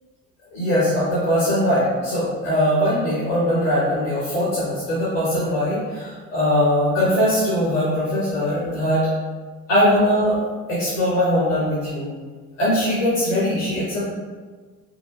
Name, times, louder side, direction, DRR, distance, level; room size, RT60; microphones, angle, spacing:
voice 1, 0.5-9.0 9.7-10.4 10.7-12.1 12.6-14.1, equal, 75° left, -9 dB, 1.2 m, -21 dB
5.3 x 2.7 x 2.2 m, 1.4 s
figure-of-eight pair, 55°, 38 cm